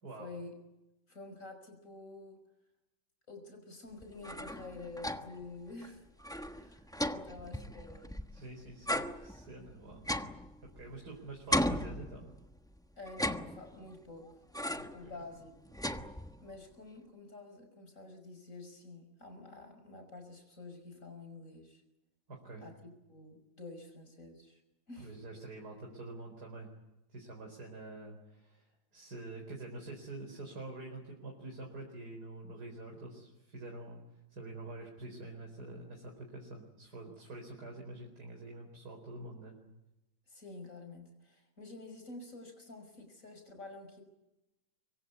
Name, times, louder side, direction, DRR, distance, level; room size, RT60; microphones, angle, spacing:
voice 1, 0.2-0.5 1.1-2.4 3.3-6.1 6.5-8.1 10.8-11.0 13.0-14.3 14.9-15.5 16.4-21.8 22.6-24.6 24.9-25.1 40.3-44.0, left 2 dB, 40° left, 6 dB, 6.0 m, -49 dB
sound 1, 4.0-5.5 5.8-5.9 6.2-8.4 8.9-11.1 11.5-12.6 13.1-14.0 14.5-15.1 15.4-16.6, equal, 5° left, 0.7 m, -36 dB
voice 2, 8.3-10.0 10.8-12.2 14.7-15.1 22.3-22.6 25.0-26.7 27.1-34.0 34.3-39.5, right 2 dB, 50° right, 0 dB, 5.0 m, -46 dB
25.5 x 23.5 x 8.4 m, 0.95 s
omnidirectional pair, 2.1 m